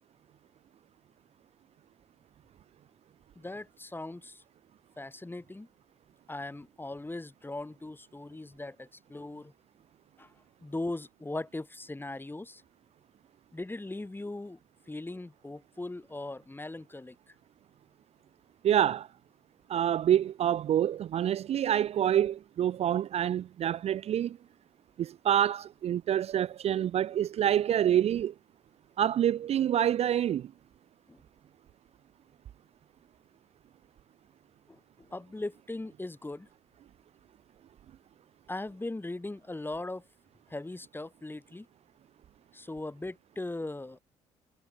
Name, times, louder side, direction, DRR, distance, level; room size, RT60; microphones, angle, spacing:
voice 1, 3.4-4.4 5.0-5.7 6.3-9.5 10.2-10.3 10.6-12.6 13.5-14.6 14.9-17.3 31.1-31.2 34.7-34.8 35.1-36.5 38.5-40.0 40.5-41.7 42.5-44.0, left 2 dB, 15° left, 2.9 m, -39 dB
voice 2, 18.6-19.1 19.7-24.4 25.0-28.3 29.0-30.5, right 10 dB, 50° right, 0.5 m, -27 dB
hypercardioid pair, 55°, 14 cm